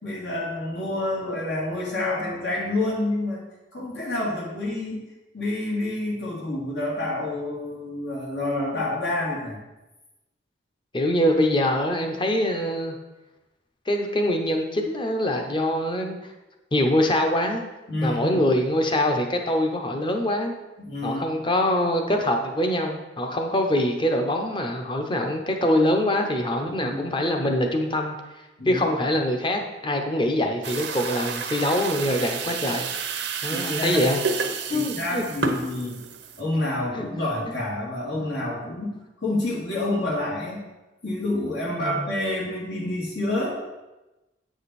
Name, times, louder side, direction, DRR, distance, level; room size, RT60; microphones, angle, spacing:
voice 1, 0.0-3.5 3.7-5.0 5.3-9.6 17.9-18.4 20.8-21.2 26.6-27.1 28.6-28.8 33.5-34.0 34.7-36.0 36.4-38.9 39.2-40.6 41.0-43.6, left 1 dB, 75° left, -4 dB, 2.2 m, -28 dB
voice 2, 10.9-13.0 13.9-16.2 16.7-17.6 18.0-20.5 21.0-28.2 28.7-32.9 33.4-34.2 34.7-35.2 36.9-37.0 41.8-42.1, left 1 dB, 25° left, 4 dB, 0.8 m, -24 dB
sound 1, 30.6-36.4, right 5 dB, 85° right, 0.8 m, -30 dB
8.5 x 5.1 x 4.2 m, 1.0 s
head